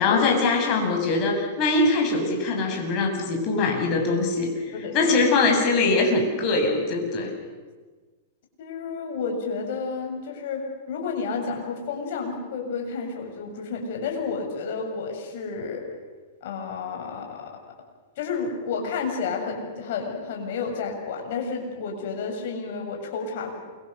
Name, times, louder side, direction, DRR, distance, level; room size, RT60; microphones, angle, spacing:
voice 1, 0.0-7.3, left 3 dB, 40° left, 2 dB, 7.3 m, -22 dB
voice 2, 4.7-5.1 8.6-15.8 16.4-17.5 18.2-23.6, left 5 dB, 60° left, 2 dB, 7.2 m, -31 dB
28.0 x 24.5 x 6.7 m, 1.4 s
hypercardioid pair, 105°, 0 cm